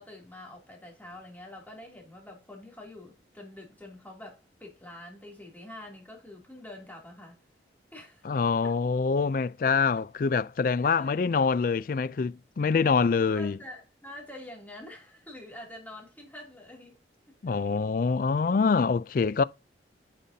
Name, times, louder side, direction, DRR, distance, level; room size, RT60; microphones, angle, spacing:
voice 1, 0.0-7.4 7.9-8.4 8.6-8.7 10.8-11.2 13.3-17.0 17.4-17.5, left 1 dB, 10° left, 2.7 m, -46 dB
voice 2, 8.2-13.6 17.4-19.4, left 5 dB, 50° left, 0.3 m, -25 dB
10.0 x 5.4 x 2.8 m
head